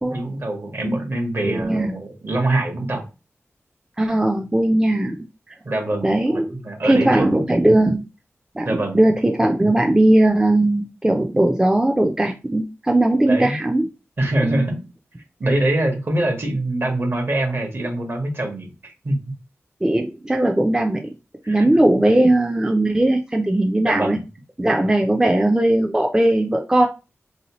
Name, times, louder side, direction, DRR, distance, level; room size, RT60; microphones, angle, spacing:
voice 1, 0.1-3.1 5.6-7.4 8.6-9.0 13.3-13.6 14.2-14.8 15.4-19.2 21.4-21.7 23.8-24.2, right 1 dB, 50° right, 4 dB, 1.0 m, -24 dB
voice 2, 1.4-1.9 4.0-5.2 6.0-6.5 6.9-8.0 8.6-8.7 8.9-13.9 14.4-14.7 15.4-15.5 19.8-21.1 21.5-24.2 24.6-26.9, right 1 dB, 15° right, 2 dB, 0.4 m, -18 dB
3.6 x 2.8 x 2.9 m, 0.30 s
wide cardioid pair, 90°, 5 cm